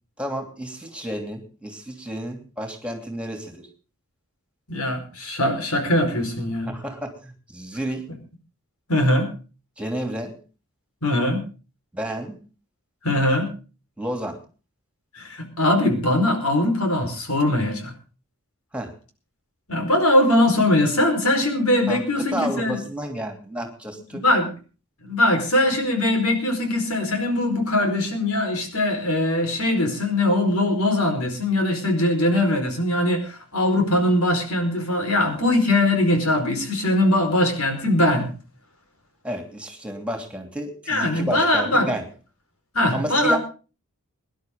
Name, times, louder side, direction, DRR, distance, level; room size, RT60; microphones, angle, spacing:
voice 1, 0.2-3.7 6.7-8.1 9.8-10.4 11.9-12.4 14.0-14.4 18.7-18.9 21.9-24.2 39.2-42.0 42.9-43.4, equal, 5° right, 4 dB, 3.0 m, -31 dB
voice 2, 4.7-6.7 8.9-9.3 11.0-11.4 13.0-13.5 15.1-17.9 19.7-22.8 24.2-24.5 25.0-38.3 40.9-41.9 42.7-43.4, left 1 dB, 90° left, 5 dB, 4.8 m, -21 dB
23.0 x 11.5 x 3.8 m, 0.35 s
head